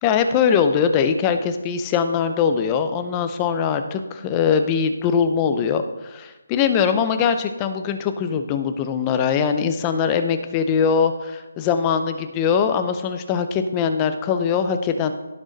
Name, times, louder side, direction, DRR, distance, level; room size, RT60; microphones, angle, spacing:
voice 1, 0.0-15.1, left 6 dB, 10° left, 8 dB, 0.4 m, -21 dB
17.0 x 6.4 x 3.9 m, 1.1 s
hypercardioid pair, 175°, 0 cm